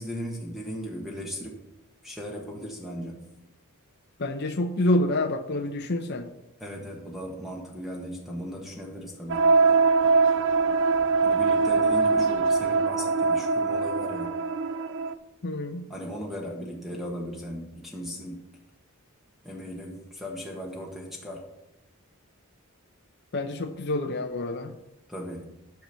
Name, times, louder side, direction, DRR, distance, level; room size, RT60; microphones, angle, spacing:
voice 1, 0.0-1.6 2.0-3.3 6.6-9.5 11.2-14.3 15.9-18.5 19.4-21.5 25.1-25.5, equal, ahead, -1 dB, 1.3 m, -37 dB
voice 2, 4.2-6.3 15.4-15.8 23.3-24.7, left 1 dB, 50° left, 4 dB, 0.7 m, -27 dB
sound 1, 9.3-15.1, right 4 dB, 60° right, 0.6 m, -22 dB
11.0 x 5.9 x 6.9 m, 0.90 s
head